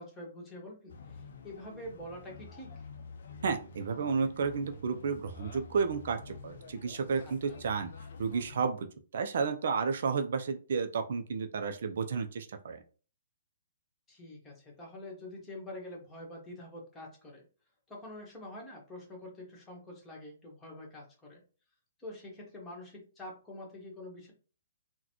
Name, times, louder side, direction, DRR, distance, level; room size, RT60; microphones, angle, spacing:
voice 1, 0.0-2.7 7.2-7.6 14.1-17.4 17.9-21.4 22.0-24.3, left 1 dB, 15° left, -2 dB, 1.3 m, -46 dB
sound 1, 0.9-8.7, left 4 dB, 55° left, 0.5 m, -49 dB
voice 2, 3.4-7.9 8.2-12.8, right 5 dB, 60° right, 7 dB, 0.4 m, -32 dB
3.8 x 2.1 x 2.9 m, 0.38 s
figure-of-eight pair, 130°, 0 cm